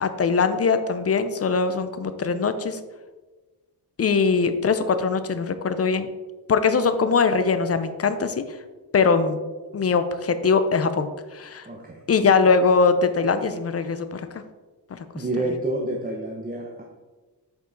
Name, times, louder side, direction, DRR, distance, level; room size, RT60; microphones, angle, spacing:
voice 1, 0.0-2.8 4.0-6.1 6.5-8.4 8.9-9.4 9.7-11.7 12.1-14.4 14.9-15.2, left 5 dB, 35° left, 10 dB, 0.5 m, -22 dB
voice 2, 11.6-12.0 15.1-16.8, right 1 dB, 20° right, 0 dB, 0.7 m, -28 dB
8.2 x 4.9 x 3.8 m, 1.3 s
wide cardioid pair, 140°, 40 cm